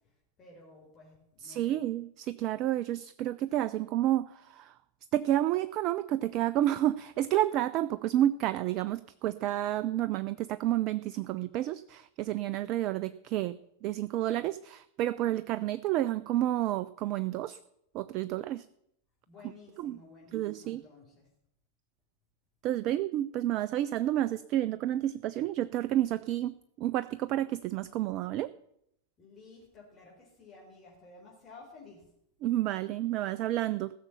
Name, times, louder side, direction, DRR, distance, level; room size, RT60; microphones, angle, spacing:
voice 1, 0.4-1.8 19.3-21.2 29.2-32.0, left 3 dB, 25° left, -4 dB, 4.1 m, -53 dB
voice 2, 1.4-4.7 5.1-17.6 17.9-18.6 19.8-20.0 20.3-20.8 22.6-28.5 32.4-33.9, right 13 dB, 40° right, 16 dB, 0.4 m, -30 dB
15.5 x 6.7 x 7.1 m, 0.76 s
figure-of-eight pair, 90°, 0 cm